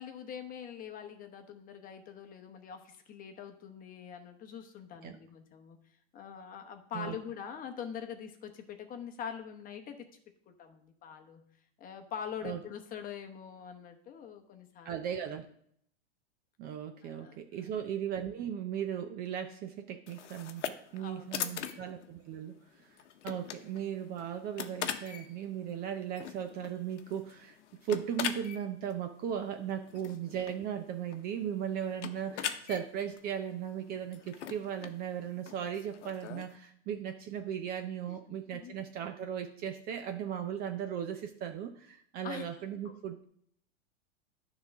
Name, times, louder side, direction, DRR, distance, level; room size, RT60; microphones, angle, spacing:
voice 1, 0.0-5.8 6.1-10.1 10.5-11.5 11.8-14.9 17.0-17.7 20.9-21.9 38.1-38.7 42.2-42.5 42.8-42.9, left 8 dB, 25° left, 5 dB, 1.0 m, -44 dB
voice 2, 14.8-15.5 16.6-23.0 23.2-27.6 27.8-43.2, right 9 dB, 25° right, 7 dB, 0.5 m, -37 dB
sound 1, 20.1-36.6, left 9 dB, 85° left, 0.9 m, -42 dB
10.0 x 3.9 x 5.9 m, 0.67 s
hypercardioid pair, 135°, 35 cm